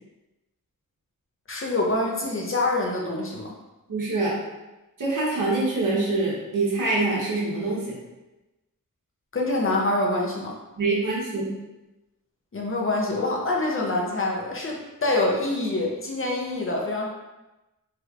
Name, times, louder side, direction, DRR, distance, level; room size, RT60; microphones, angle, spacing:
voice 1, 1.5-3.5 9.3-10.6 12.5-17.1, left 2 dB, 40° left, -2 dB, 0.7 m, -25 dB
voice 2, 3.9-4.3 5.0-7.9 10.8-11.5, right 2 dB, 70° right, -6 dB, 1.2 m, -25 dB
3.2 x 2.9 x 2.5 m, 1.0 s
wide cardioid pair, 80°, 33 cm